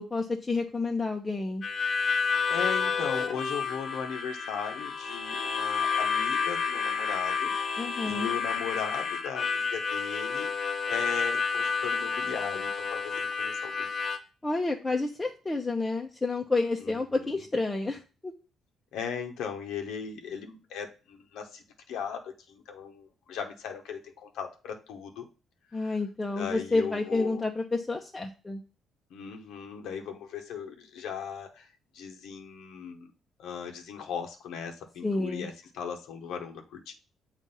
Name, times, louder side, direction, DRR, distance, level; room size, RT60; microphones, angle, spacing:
voice 1, 0.0-1.6 7.8-8.3 14.4-18.3 25.7-28.6 35.0-35.5, left 3 dB, 20° left, 1 dB, 0.7 m, -30 dB
Harmonica, 1.6-14.2, left 5 dB, 55° left, 1.0 m, -30 dB
voice 2, 2.5-7.5 7.8-13.9 16.8-17.4 18.9-25.3 25.7-25.9 26.4-27.4 29.1-31.7 31.9-33.1 33.4-36.9, left 7 dB, 85° left, 3 dB, 0.8 m, -38 dB
7.0 x 2.5 x 5.4 m, 0.33 s
cardioid pair, 90°, 0 cm